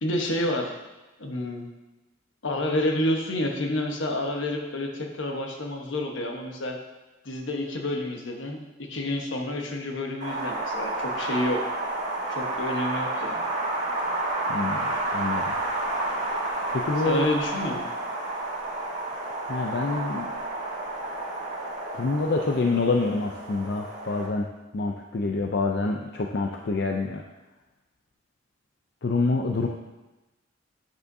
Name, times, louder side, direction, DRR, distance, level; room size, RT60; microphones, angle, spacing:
voice 1, 0.0-0.7 1.2-1.6 2.4-6.8 7.2-8.6 8.9-11.6 12.3-13.5 17.0-17.8, left 1 dB, 75° left, 2 dB, 1.1 m, -29 dB
Wind, 10.2-24.3, right 2 dB, 60° right, 2.4 m, -30 dB
voice 2, 14.5-15.5 16.7-17.3 19.5-20.4 21.9-27.2 29.0-29.7, left 3 dB, 55° left, 1 dB, 0.5 m, -27 dB
8.9 x 8.0 x 2.7 m, 1.1 s
head